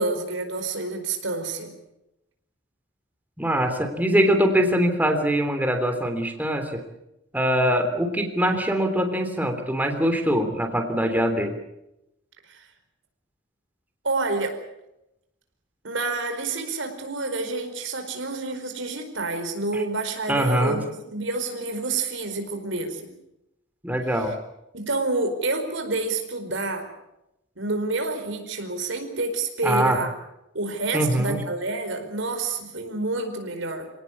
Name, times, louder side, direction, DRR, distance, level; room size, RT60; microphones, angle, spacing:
voice 1, 0.0-1.7 12.5-12.7 14.0-14.6 15.8-23.1 24.7-26.9 27.6-30.1 30.5-33.9, right 3 dB, 80° right, 6 dB, 4.7 m, -28 dB
voice 2, 3.4-6.8 7.3-11.5 19.7-19.8 20.3-20.8 23.8-24.3 29.6-30.0 30.9-31.4, equal, 10° right, 5 dB, 3.4 m, -23 dB
27.0 x 18.5 x 8.5 m, 0.87 s
head